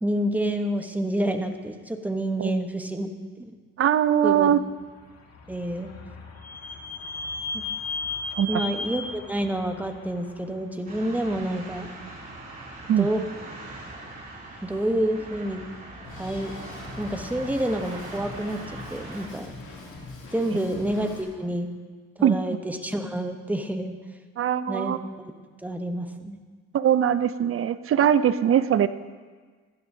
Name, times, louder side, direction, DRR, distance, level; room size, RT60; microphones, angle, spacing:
voice 1, 0.0-3.1 3.4-3.5 4.2-4.5 5.5-5.9 7.5-7.6 8.5-11.9 12.9-13.2 14.6-15.6 16.2-16.5 17.0-19.5 20.3-21.7 22.2-23.9 24.7-25.0 25.6-26.4, right 1 dB, 5° right, 5 dB, 1.0 m, -28 dB
voice 2, 3.8-4.6 8.4-8.6 12.9-13.1 22.2-22.4 24.4-25.0 26.7-28.9, right 9 dB, 45° right, 14 dB, 0.5 m, -21 dB
Vehicle / Squeak, 5.0-10.6, left 3 dB, 55° left, 1.6 m, -35 dB
sound 1, 10.9-19.3, right 2 dB, 30° right, 2.9 m, -41 dB
Drum kit, 16.0-21.2, left 3 dB, 75° left, 2.8 m, -42 dB
15.5 x 11.0 x 2.7 m, 1.5 s
cardioid pair, 90°, 30 cm